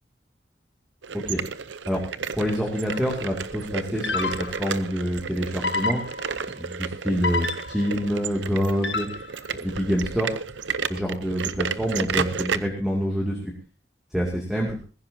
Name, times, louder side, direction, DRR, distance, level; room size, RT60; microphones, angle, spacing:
sound 1, 1.0-12.6, right 6 dB, 85° right, 0.8 m, -32 dB
voice 1, 2.3-6.0 6.6-9.1 9.6-10.3 10.9-13.5 14.1-14.8, equal, 5° right, -1 dB, 2.5 m, -26 dB
sound 2, 2.9-3.2 4.0-4.8 5.6-6.5 7.2-8.0 8.8-9.5, left 3 dB, 75° left, 1.4 m, -29 dB
20.5 x 15.5 x 2.8 m, 0.36 s
head